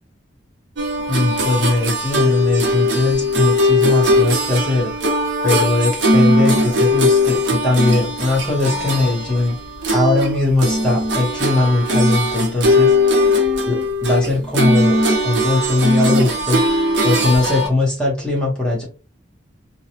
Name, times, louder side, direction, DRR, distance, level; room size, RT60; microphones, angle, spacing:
sound 1, 0.8-10.3 10.6-17.7, left 1 dB, 65° right, 0.7 m, -19 dB
voice 1, 1.1-4.9 5.4-9.6 9.9-13.0 13.7-15.0 15.2-16.6 17.0-18.8, left 2 dB, 5° left, -3 dB, 0.9 m, -19 dB
2.8 x 2.3 x 2.7 m, 0.33 s
head